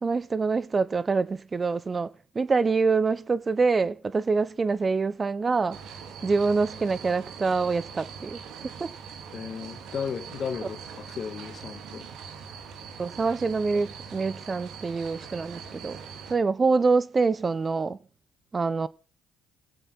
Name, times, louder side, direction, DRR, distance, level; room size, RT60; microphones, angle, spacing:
voice 1, 0.0-5.8 6.2-8.4 8.8-8.9 13.0-16.0 16.3-18.0 18.5-18.9, right 4 dB, 30° right, 0.8 m, -25 dB
sound 1, 5.7-16.3, right 6 dB, 60° right, 3.3 m, -42 dB
voice 2, 9.3-12.1, left 6 dB, 45° left, 2.5 m, -35 dB
16.5 x 15.5 x 4.2 m
hypercardioid pair, 55°, 0 cm